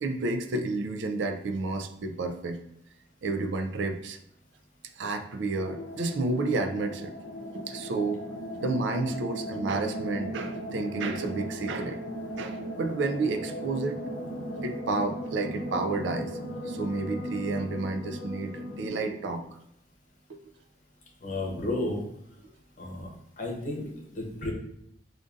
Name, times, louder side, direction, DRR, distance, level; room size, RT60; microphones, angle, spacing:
voice 1, 0.0-2.6 3.2-4.2 5.0-7.1 7.5-8.2 8.6-12.0 12.4-14.0 14.6-16.4 16.6-19.6 20.3-20.4, right 3 dB, 75° right, 6 dB, 0.4 m, -31 dB
sound 1, 5.6-18.9, equal, 70° left, 0.7 m, -37 dB
voice 2, 21.2-22.0 22.8-23.1 23.4-24.5, left 2 dB, 45° left, -1 dB, 0.8 m, -32 dB
5.0 x 2.5 x 2.4 m, 0.75 s
head